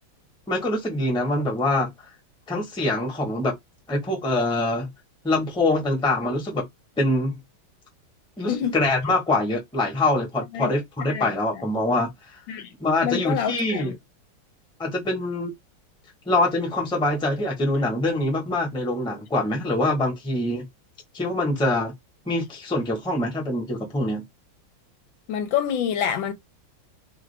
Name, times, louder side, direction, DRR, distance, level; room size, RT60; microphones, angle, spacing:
voice 1, 0.5-1.9 2.5-3.5 3.9-4.9 5.2-6.7 7.0-7.4 8.4-12.1 12.8-13.9 14.8-15.5 16.3-20.7 21.1-21.9 22.3-24.2, left 2 dB, 5° left, 0.7 m, -24 dB
voice 2, 8.5-8.8 10.5-10.7 11.1-11.3 11.5-11.6 12.5-12.7 13.0-13.9 25.3-26.3, left 9 dB, 80° left, 1.3 m, -27 dB
3.3 x 2.4 x 3.3 m
omnidirectional pair, 2.2 m